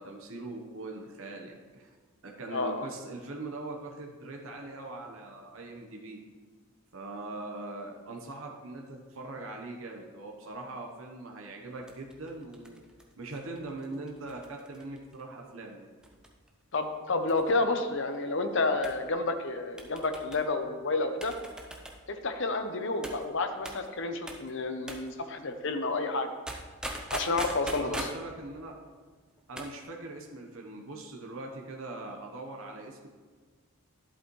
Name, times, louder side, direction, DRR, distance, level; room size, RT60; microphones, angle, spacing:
voice 1, 0.0-1.9 2.2-6.2 6.9-12.8 13.2-15.9 27.3-28.8 29.5-33.1, right 2 dB, 65° right, 1 dB, 1.0 m, -41 dB
voice 2, 2.5-2.9 16.7-21.3 22.1-26.3 27.1-28.1, left 3 dB, 55° left, 7 dB, 0.7 m, -30 dB
sound 1, 11.8-15.2 16.0-16.5 16.7-16.8 17.3-17.7 18.8-19.0 19.8-20.4 21.2-22.0 23.0-23.2 23.7-23.9 24.3-24.5 24.9-25.1 26.5-28.2 29.4-29.8 30.0-30.1, right 1 dB, 5° right, 0.6 m, -41 dB
11.0 x 7.9 x 3.1 m, 1.5 s
head